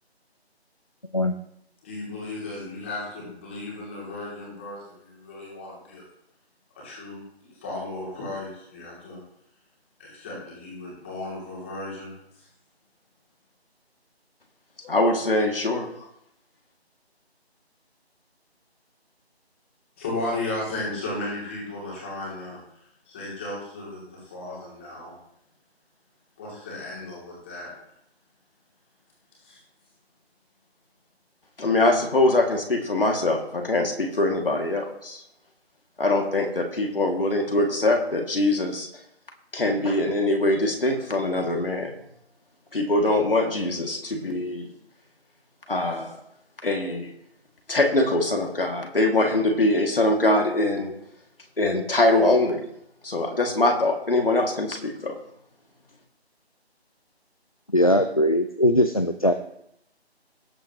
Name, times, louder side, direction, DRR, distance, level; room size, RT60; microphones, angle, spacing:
voice 1, 1.8-6.0 6.8-9.2 10.0-12.1 20.0-22.6 23.1-25.1 26.4-27.7 29.4-29.6, left 2 dB, 10° left, -5 dB, 2.7 m, -35 dB
voice 2, 14.8-15.9 31.6-35.2 36.0-38.9 39.5-41.9 42.7-44.7 45.7-46.2 46.6-47.1 47.7-50.9 51.6-52.6 53.0-55.2, left 2 dB, 60° left, 2 dB, 2.3 m, -23 dB
voice 3, 57.7-59.3, left 1 dB, 35° left, 8 dB, 0.5 m, -20 dB
18.5 x 8.0 x 3.0 m, 0.77 s
figure-of-eight pair, 170°, 32 cm